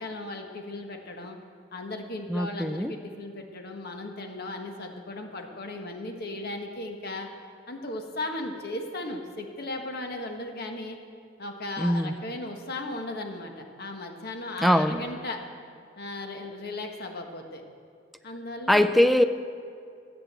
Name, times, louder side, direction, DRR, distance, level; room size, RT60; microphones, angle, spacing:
voice 1, 0.0-1.4 1.7-7.3 7.7-11.0 11.4-15.4 16.0-17.6 18.2-18.9, left 2 dB, 55° left, 3 dB, 1.4 m, -36 dB
voice 2, 2.3-2.9 11.8-12.1 14.6-15.0 18.7-19.2, equal, ahead, 9 dB, 0.5 m, -22 dB
14.0 x 8.6 x 7.5 m, 2.4 s
head